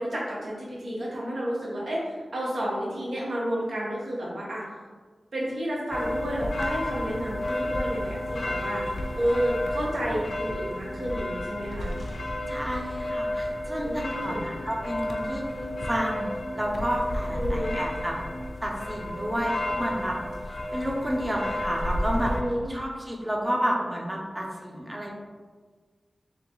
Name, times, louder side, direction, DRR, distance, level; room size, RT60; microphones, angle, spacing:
voice 1, 0.0-4.6 5.3-8.8 9.2-11.9 13.8-14.4 17.4-17.8 22.3-22.7, equal, 85° right, -5 dB, 1.0 m, -31 dB
sound 1, 5.9-22.4, left 1 dB, 70° left, 0.4 m, -31 dB
voice 2, 12.5-15.5 15.8-18.2 18.6-20.2 20.4-22.3 22.7-25.1, equal, 15° right, -1 dB, 0.5 m, -30 dB
3.8 x 3.0 x 3.0 m, 1.4 s
wide cardioid pair, 90°, 0 cm